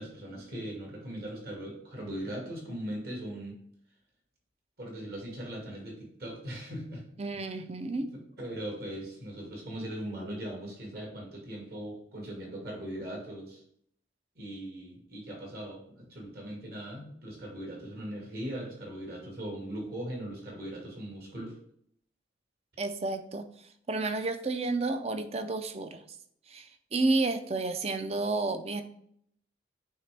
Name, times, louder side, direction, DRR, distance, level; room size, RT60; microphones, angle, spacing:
voice 1, 0.0-3.6 4.8-7.0 7.3-7.5 7.9-8.1 8.4-13.6 14.4-21.5, right 1 dB, 55° right, -1 dB, 1.9 m, -39 dB
voice 2, 7.2-8.1 22.8-23.5 23.9-26.0 26.5-28.8, right 3 dB, 35° right, 8 dB, 0.5 m, -31 dB
8.7 x 3.3 x 3.4 m, 0.67 s
head